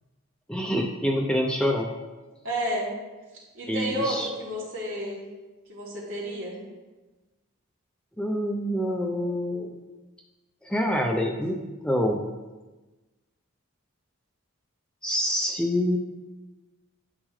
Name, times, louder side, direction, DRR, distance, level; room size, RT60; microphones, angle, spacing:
voice 1, 0.5-1.9 3.7-4.3 8.2-9.7 10.7-11.6 11.8-12.3 15.0-16.0, equal, 5° left, 0 dB, 0.5 m, -26 dB
voice 2, 2.4-2.9 3.5-5.2 5.7-6.6, equal, 65° right, -6 dB, 3.0 m, -31 dB
9.8 x 8.5 x 3.2 m, 1.2 s
head